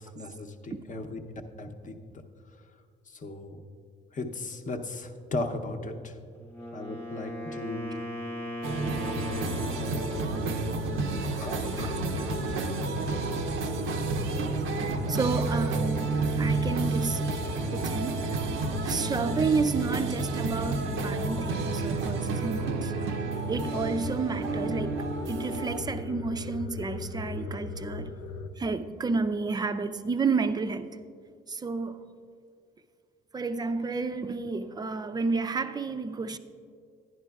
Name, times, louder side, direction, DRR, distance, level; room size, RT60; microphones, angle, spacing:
voice 1, 0.0-2.2 3.1-3.6 4.1-6.1 6.7-8.1 8.8-9.5 9.8-10.0 11.4-11.9, left 2 dB, 40° left, 0.7 m, -37 dB
Wind instrument woodwind instrument, 6.4-10.3, left 1 dB, 10° left, 1.1 m, -38 dB
sound 1, 8.6-25.8, right 4 dB, 85° right, 0.6 m, -31 dB
sound 2, 9.2-28.5, left 3 dB, 90° left, 0.5 m, -37 dB
voice 2, 11.8-12.3 15.1-16.1 16.4-17.2 17.7-18.5 18.8-22.9 23.5-28.1 28.6-30.9 31.5-32.0 33.3-36.4, right 4 dB, 20° right, 0.4 m, -31 dB
11.0 x 10.5 x 2.3 m
cardioid pair, 90°, 20 cm